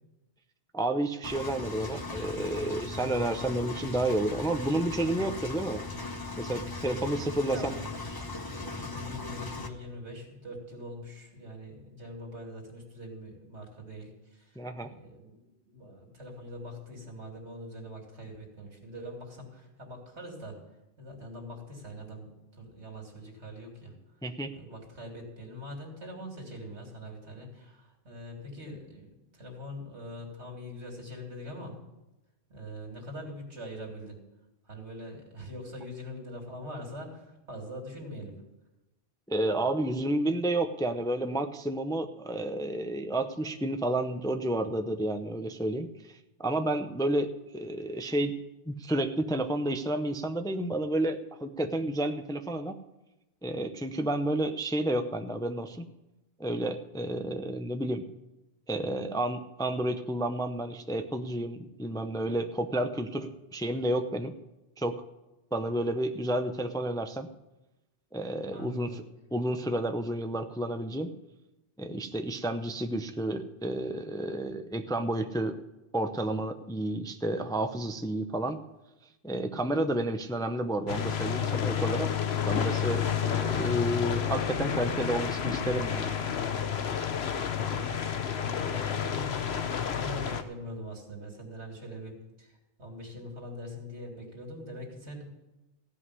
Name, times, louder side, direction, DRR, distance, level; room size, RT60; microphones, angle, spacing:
voice 1, 0.7-5.8 6.3-7.8 14.6-14.9 24.2-24.5 39.3-48.3 48.7-52.7 53.4-55.9 56.4-58.0 58.7-64.3 64.8-65.0 65.5-67.3 68.1-69.0 69.3-71.1 71.8-75.6 75.9-78.6 79.2-82.1 82.4-86.1, right 1 dB, 5° left, 7 dB, 0.5 m, -31 dB
Engine, 1.2-9.7, left 3 dB, 20° left, 0.9 m, -38 dB
voice 2, 7.5-15.4 15.7-20.6 21.0-23.9 24.5-29.1 29.3-31.7 32.5-34.2 34.7-38.4 68.5-69.0 87.6-95.2, left 1 dB, 85° right, 1 dB, 3.1 m, -43 dB
sound 1, 80.9-90.4, left 8 dB, 70° left, 1.1 m, -30 dB
15.5 x 5.6 x 9.7 m, 0.99 s
omnidirectional pair, 1.1 m